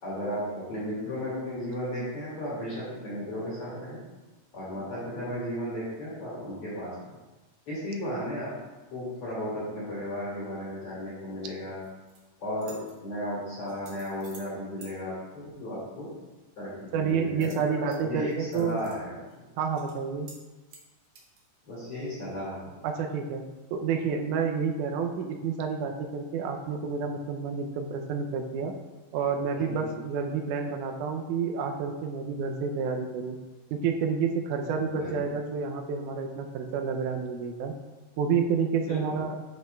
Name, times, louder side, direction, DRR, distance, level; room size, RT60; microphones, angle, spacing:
voice 1, 0.0-4.0 4.5-6.9 7.7-8.5 8.9-11.8 12.4-16.1 16.6-16.7 17.0-19.2 21.7-22.7 34.9-35.3 38.9-39.0, equal, 45° left, -9 dB, 2.9 m, -34 dB
sound 1, 11.8-12.2 12.6-12.9 13.7-14.5 14.8-14.9 17.4-18.0 18.3-19.0 19.3-19.4 19.8-19.9 20.3-20.4 20.7-21.4, right 4 dB, 60° right, 1.3 m, -51 dB
voice 2, 16.9-18.8 19.6-20.3 22.8-23.4 23.7-28.7 29.1-33.4 33.7-37.7 38.2-39.4, right 6 dB, 80° right, 4 dB, 2.0 m, -29 dB
10.5 x 5.4 x 2.3 m, 1.2 s
omnidirectional pair, 3.8 m